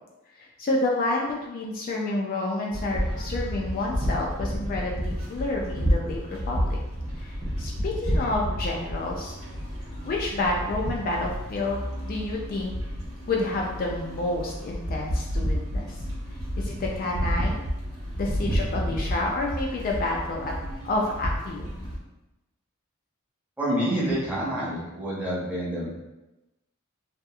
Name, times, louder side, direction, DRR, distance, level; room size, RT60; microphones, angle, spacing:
voice 1, 0.4-6.8 7.2-9.3 10.0-12.7 13.3-16.0 16.6-17.6 18.2-20.5 20.8-21.9, left 2 dB, 45° left, -1 dB, 0.3 m, -29 dB
sound 1, 2.7-22.0, equal, 75° right, 0.9 m, -30 dB
voice 2, 23.6-25.9, right 1 dB, 5° right, -7 dB, 0.7 m, -27 dB
2.7 x 2.4 x 2.3 m, 1.0 s
head